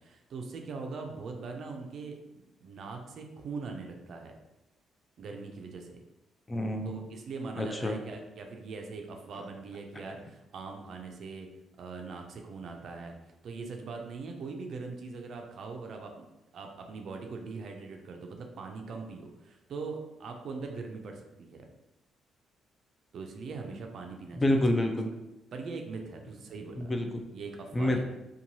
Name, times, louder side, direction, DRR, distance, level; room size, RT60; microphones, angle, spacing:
voice 1, 0.0-4.3 5.2-6.0 6.8-11.5 11.8-13.1 13.4-16.2 16.5-21.7 23.1-24.6 25.5-26.9 27.3-28.0, right 4 dB, 60° right, 3 dB, 0.4 m, -41 dB
voice 2, 6.5-7.0 7.6-8.0 24.4-25.1 26.8-27.2 27.7-28.0, left 1 dB, 20° left, 4 dB, 0.4 m, -28 dB
2.9 x 2.2 x 2.7 m, 0.96 s
cardioid pair, 90°, 0 cm